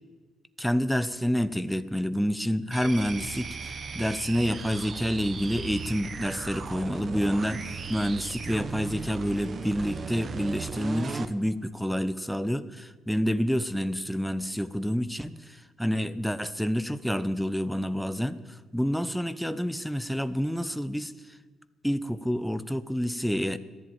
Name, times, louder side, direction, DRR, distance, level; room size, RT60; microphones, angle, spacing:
voice 1, 0.6-21.1 21.8-23.6, equal, ahead, 12 dB, 0.7 m, -28 dB
sound 1, 2.7-11.3, right 5 dB, 45° right, 1.0 m, -37 dB
14.5 x 11.0 x 8.9 m, 1.4 s
cardioid pair, 90°, 0 cm